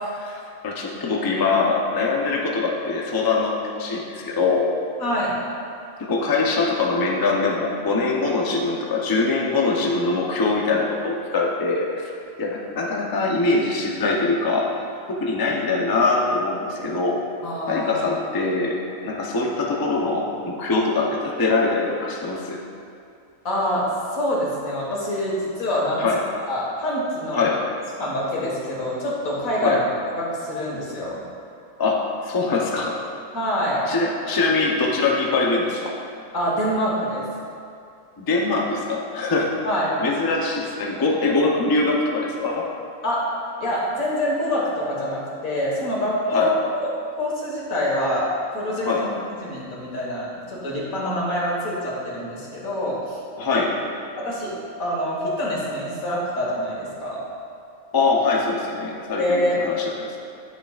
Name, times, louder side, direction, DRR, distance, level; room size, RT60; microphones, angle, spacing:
voice 1, 0.2-4.7 6.0-12.1 12.4-14.7 15.1-17.3 17.7-18.8 19.0-22.6 26.0-26.2 27.3-27.7 29.6-29.8 31.8-33.0 33.9-36.0 38.2-39.6 40.0-42.8 46.3-46.5 48.8-49.1 53.4-53.7 57.9-60.1, left 3 dB, 25° left, -1 dB, 0.5 m, -23 dB
voice 2, 5.0-5.3 17.4-18.1 23.4-26.0 26.5-27.4 28.0-29.8 30.2-31.2 33.3-33.8 36.3-37.3 39.6-39.9 43.0-43.3 43.6-46.9 47.2-49.1 49.4-53.2 53.5-53.6 54.2-54.5 54.8-57.2 59.2-59.6, equal, 90° left, -5 dB, 2.1 m, -25 dB
10.5 x 6.7 x 2.4 m, 2.5 s
omnidirectional pair, 1.4 m